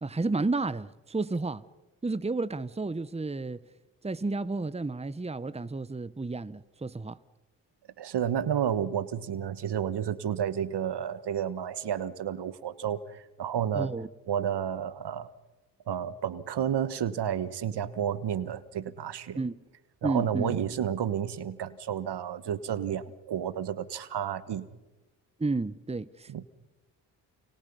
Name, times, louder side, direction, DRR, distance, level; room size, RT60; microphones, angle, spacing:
voice 1, 0.0-1.6 2.0-3.6 4.0-7.2 13.7-14.1 19.4-19.6 20.0-20.6 25.4-26.4, right 3 dB, 15° right, 1.1 m, -31 dB
voice 2, 8.0-13.9 14.3-15.3 15.9-19.4 20.0-24.7 26.3-26.4, right 9 dB, 65° right, 1.5 m, -31 dB
29.5 x 28.0 x 5.6 m
supercardioid pair, 45°, 43 cm